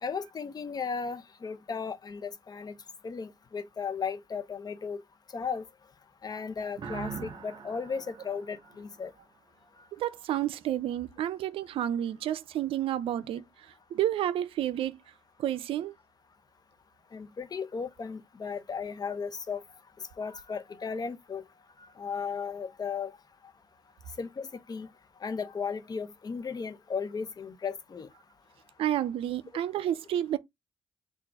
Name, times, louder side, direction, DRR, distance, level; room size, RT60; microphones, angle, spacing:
voice 1, 0.0-2.7 3.0-5.0 5.3-5.6 6.2-9.1 17.1-19.6 20.2-21.4 22.0-23.2 24.2-24.9 25.2-28.1, left 5 dB, 45° left, 0.8 m, -35 dB
sound 1, 6.8-9.4, right 6 dB, 60° right, 0.8 m, -42 dB
voice 2, 9.9-15.0 15.4-15.9 28.8-30.4, right 11 dB, 75° right, 0.4 m, -30 dB
3.9 x 2.4 x 4.6 m
supercardioid pair, 60°, 9 cm